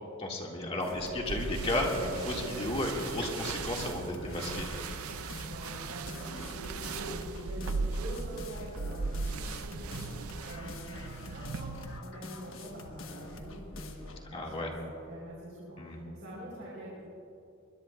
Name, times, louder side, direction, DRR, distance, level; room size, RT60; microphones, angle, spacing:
voice 1, 0.2-4.7 14.2-14.7 15.8-16.0, left 1 dB, 25° left, -1 dB, 2.0 m, -33 dB
sound 1, 0.8-14.3, left 2 dB, 65° left, 1.3 m, -46 dB
sound 2, 1.3-12.0, right 4 dB, 85° right, 0.6 m, -38 dB
voice 2, 5.4-17.0, right 1 dB, 60° right, -6 dB, 3.9 m, -45 dB
22.5 x 20.5 x 2.4 m, 2.8 s
head